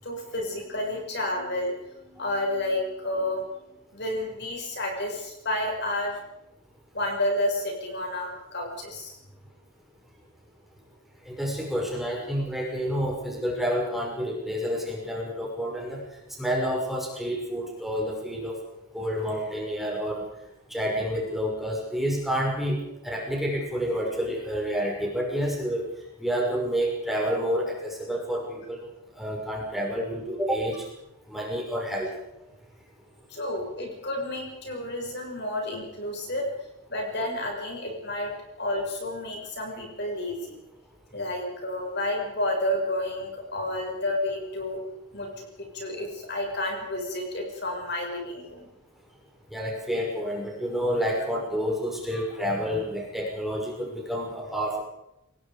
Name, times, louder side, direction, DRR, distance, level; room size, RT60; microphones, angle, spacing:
voice 1, 0.0-6.2 6.9-9.2 33.3-36.5 36.9-40.6 41.1-44.8 45.1-45.5 45.7-48.7, left 1 dB, 50° left, 1 dB, 6.4 m, -30 dB
voice 2, 11.3-16.0 16.4-18.6 18.9-20.2 20.7-22.8 23.0-25.8 26.2-28.9 29.2-30.8 31.3-32.1 49.5-54.8, equal, ahead, -2 dB, 5.8 m, -29 dB
27.0 x 19.0 x 5.2 m, 0.87 s
head